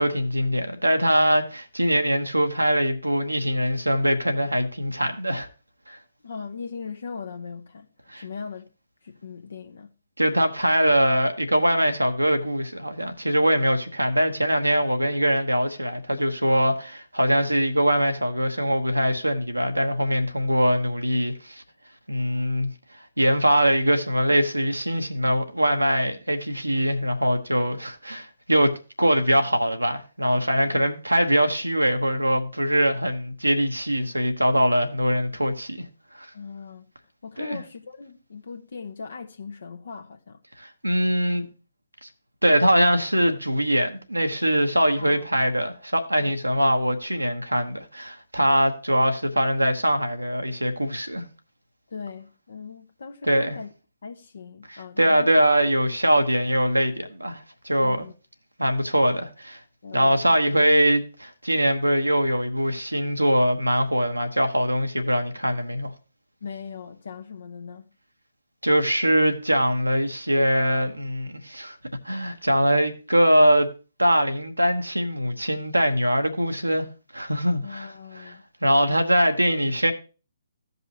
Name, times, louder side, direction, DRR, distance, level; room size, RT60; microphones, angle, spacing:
voice 1, 0.0-5.5 5.9-6.0 8.1-8.2 10.2-21.6 22.1-22.7 23.2-35.8 36.2-36.3 37.4-37.6 40.6-41.5 42.0-42.1 42.4-51.2 53.3-53.6 54.7-58.1 58.6-59.6 59.9-65.9 68.6-71.8 72.0-73.7 74.0-76.9 77.1-78.3 78.6-79.9, equal, 85° right, 1.1 m, -22 dB
voice 2, 6.2-7.9 8.1-8.7 9.0-9.9 36.3-36.9 37.2-40.4 45.0-45.3 46.2-46.3 51.9-53.7 54.0-55.3 57.8-58.1 59.8-60.4 66.4-67.9 77.6-78.4, left 5 dB, 60° left, 0.8 m, -39 dB
15.5 x 5.4 x 2.8 m
figure-of-eight pair, 130°, 0 cm